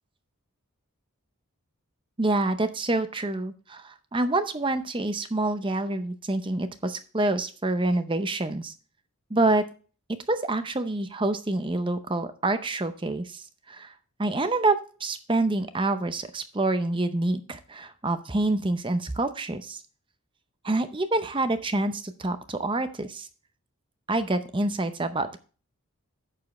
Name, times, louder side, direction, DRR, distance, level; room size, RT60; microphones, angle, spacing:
voice 1, 2.2-8.7 9.3-9.6 10.3-13.9 14.2-19.8 20.6-23.3 24.1-25.4, right 2 dB, 20° right, 10 dB, 0.7 m, -27 dB
11.0 x 7.4 x 3.1 m, 0.37 s
head